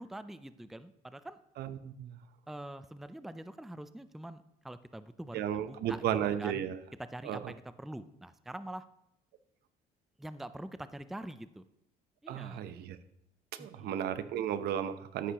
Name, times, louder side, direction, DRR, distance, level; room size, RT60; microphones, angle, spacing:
voice 1, 0.0-1.4 2.5-6.6 7.1-8.9 10.2-11.6 12.2-12.6 13.6-13.9, right 1 dB, ahead, 12 dB, 0.4 m, -45 dB
voice 2, 1.6-2.2 5.3-6.8 7.2-7.5 12.3-13.0 13.5-15.3, right 10 dB, 70° right, 12 dB, 0.9 m, -34 dB
13.0 x 10.0 x 3.0 m, 0.80 s
cardioid pair, 110°, 17 cm